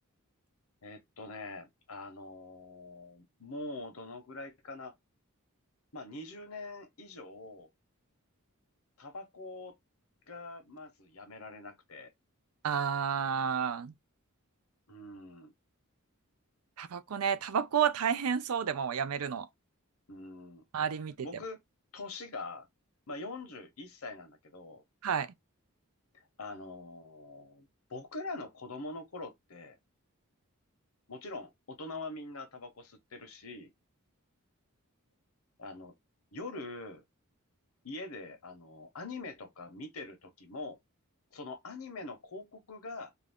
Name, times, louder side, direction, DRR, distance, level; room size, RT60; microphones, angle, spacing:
voice 1, 0.8-4.9 5.9-7.7 9.0-9.7 10.3-12.1 14.9-15.5 20.1-20.6 21.2-21.6 21.9-22.7 23.1-24.8 26.4-29.8 31.1-33.7 35.6-35.9 36.3-37.0 37.8-40.8 41.3-43.1, left 2 dB, 80° left, 0.8 m, -44 dB
voice 2, 12.6-13.9 16.8-19.5 20.7-21.3 25.0-25.3, right 7 dB, 85° right, 0.5 m, -30 dB
2.5 x 2.3 x 3.4 m
head